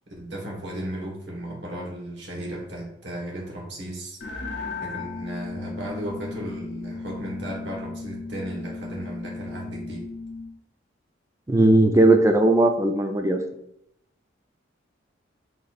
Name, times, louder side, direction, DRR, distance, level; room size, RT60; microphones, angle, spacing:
voice 1, 0.1-4.4 4.8-10.0, right 1 dB, 70° right, -1 dB, 1.2 m, -35 dB
sound 1, 4.2-10.6, left 3 dB, 60° left, 0.7 m, -36 dB
voice 2, 11.5-13.4, right 2 dB, 15° right, 5 dB, 0.3 m, -18 dB
3.9 x 2.4 x 4.0 m, 0.78 s
head